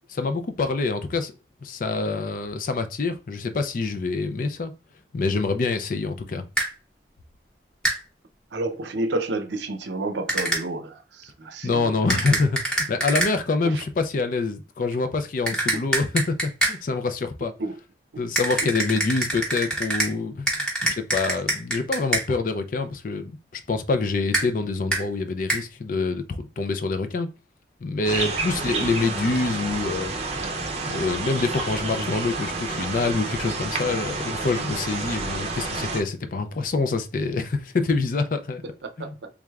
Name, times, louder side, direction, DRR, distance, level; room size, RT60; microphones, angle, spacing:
voice 1, 0.1-1.3 1.6-4.7 5.1-6.4 11.6-17.5 18.2-27.3 27.8-30.1 30.9-38.6 39.0-39.2, left 3 dB, 50° left, 0.4 m, -26 dB
sound 1, 6.6-6.7 7.8-8.0 10.3-10.6 12.1-13.3 15.5-16.8 18.4-20.1 20.5-22.3 24.3-24.5 24.9-25.0 25.5-25.6, right 1 dB, 5° left, 0.9 m, -25 dB
voice 2, 8.5-12.0 13.6-13.8 17.6-17.8 18.1-18.2 20.8-20.9 28.6-29.0 38.8-39.3, right 2 dB, 80° right, 0.6 m, -31 dB
sound 2, 28.0-36.0, right 3 dB, 35° right, 0.6 m, -30 dB
3.5 x 3.2 x 2.3 m
head